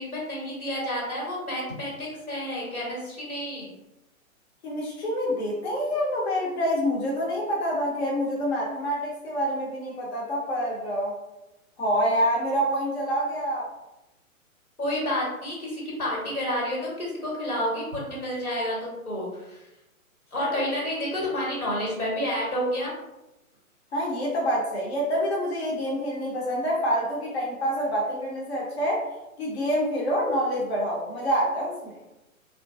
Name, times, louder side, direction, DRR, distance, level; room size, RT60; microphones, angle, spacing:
voice 1, 0.0-3.7 14.8-19.6 20.3-22.9, left 1 dB, 90° left, -5 dB, 1.4 m, -30 dB
voice 2, 4.6-11.1 11.8-13.7 20.4-20.6 23.9-29.0 29.4-32.0, equal, 50° left, -4 dB, 0.7 m, -27 dB
2.9 x 2.4 x 2.4 m, 0.97 s
figure-of-eight pair, 125°, 42 cm